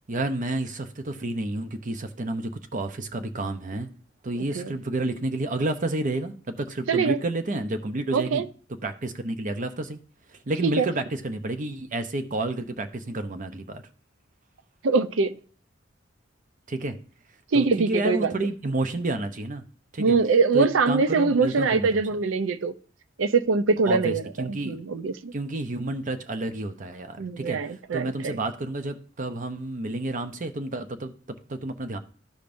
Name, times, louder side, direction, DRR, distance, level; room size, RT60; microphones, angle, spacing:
voice 1, 0.1-3.9 4.2-8.4 8.8-10.0 10.3-13.8 16.7-17.0 17.5-19.6 19.9-20.2 20.5-22.0 23.8-24.8 25.3-27.6 27.9-32.0, right 2 dB, 45° right, 0.7 m, -30 dB
voice 2, 6.9-7.2 8.1-8.5 10.8-10.9 14.8-15.4 17.5-18.3 20.0-22.7 23.2-24.2 24.5-25.3 27.2-28.4, right 4 dB, 80° right, 0.5 m, -23 dB
13.5 x 5.2 x 2.6 m
head